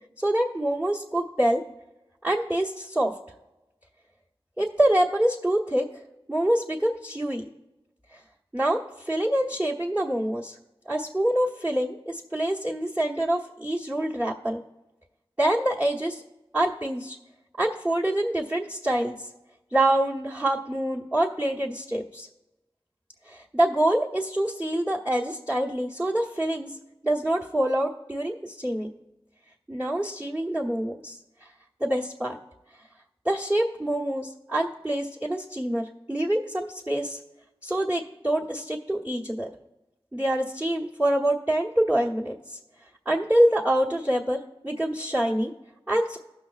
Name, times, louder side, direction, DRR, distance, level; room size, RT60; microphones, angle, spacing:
voice 1, 0.2-1.6 2.2-3.1 4.6-6.0 6.3-7.4 8.1-8.2 8.5-10.6 10.9-14.6 15.4-16.2 16.5-17.2 17.6-19.3 19.7-22.3 23.3-26.8 27.0-28.9 29.7-31.5 31.8-32.4 33.2-37.2 37.6-39.5 40.1-42.6 43.0-45.5 45.9-46.2, right 1 dB, 15° right, -5 dB, 1.1 m, -26 dB
17.0 x 6.3 x 2.4 m, 0.99 s
wide cardioid pair, 45°, 10 cm